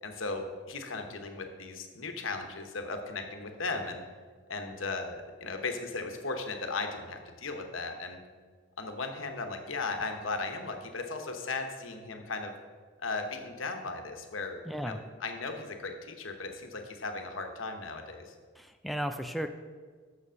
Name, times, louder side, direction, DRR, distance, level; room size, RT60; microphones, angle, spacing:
voice 1, 0.0-4.0 4.5-8.2 8.8-12.5 13.0-18.3, left 3 dB, 85° left, 5 dB, 1.1 m, -37 dB
voice 2, 14.7-15.0 18.6-19.5, equal, ahead, 6 dB, 0.3 m, -34 dB
6.9 x 6.9 x 6.3 m, 1.5 s
head